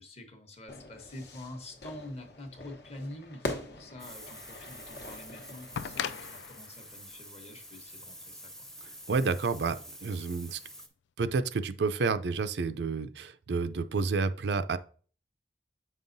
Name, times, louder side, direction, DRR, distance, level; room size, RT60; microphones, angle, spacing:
voice 1, 0.0-8.7, left 1 dB, 35° left, 1.0 m, -46 dB
Fire / Fireworks, 0.7-6.2, left 1 dB, 65° left, 1.0 m, -43 dB
sound 1, 4.0-10.9, equal, 5° left, 0.6 m, -48 dB
sound 2, 5.7-8.6 9.8-9.9, left 8 dB, 85° left, 0.3 m, -39 dB
voice 2, 9.1-10.6 11.2-14.8, right 4 dB, 75° right, 0.4 m, -30 dB
7.7 x 5.5 x 2.6 m
head